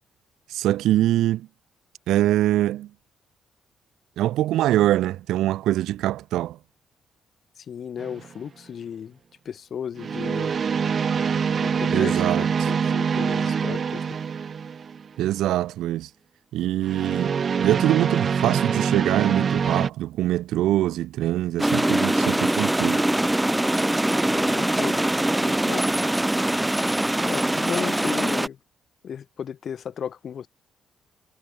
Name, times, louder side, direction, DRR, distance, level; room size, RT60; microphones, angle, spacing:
voice 1, 0.5-1.5 2.1-2.9 4.2-6.6 11.9-12.5 15.2-16.1 16.5-23.0, right 14 dB, 85° right, 0.7 m, -23 dB
voice 2, 7.6-9.2 9.4-10.6 11.6-14.0 24.2-25.0 25.4-25.9 27.2-28.6 29.0-30.5, left 8 dB, 55° left, 2.9 m, -34 dB
sound 1, 8.0-8.3 10.0-15.1 16.8-19.9, right 6 dB, 45° right, 0.8 m, -25 dB
sound 2, 21.6-28.5, right 1 dB, 10° right, 1.1 m, -23 dB
cardioid pair, 90°, 0 cm